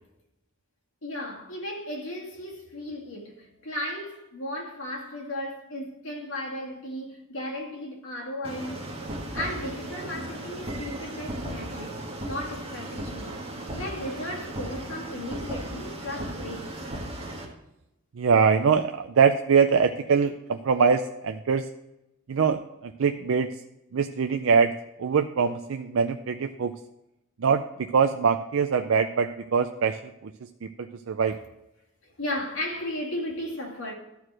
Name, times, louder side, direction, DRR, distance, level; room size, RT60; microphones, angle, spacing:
voice 1, 1.0-8.9 9.3-13.4 13.7-17.0 32.0-33.9, left 1 dB, 85° left, 2.1 m, -35 dB
sound 1, 8.4-17.4, right 1 dB, 25° right, 1.6 m, -36 dB
voice 2, 18.2-21.7 22.3-23.6 23.9-24.7 25.0-26.7 27.4-30.3 30.6-31.4, right 6 dB, 75° right, 0.4 m, -23 dB
13.0 x 4.7 x 6.1 m
head